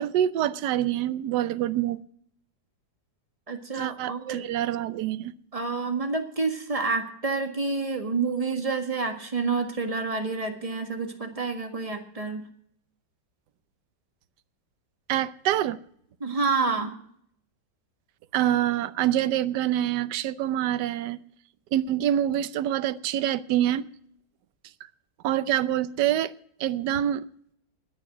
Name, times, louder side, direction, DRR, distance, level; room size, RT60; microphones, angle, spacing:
voice 1, 0.0-2.0 3.7-5.3 15.1-15.8 18.3-21.2 21.7-23.9 25.2-26.3 26.6-27.2, right 12 dB, 70° right, 1.2 m, -26 dB
voice 2, 3.5-4.5 5.5-12.4 16.2-17.0, right 4 dB, 20° right, 1.7 m, -28 dB
21.0 x 7.1 x 6.1 m
omnidirectional pair, 2.0 m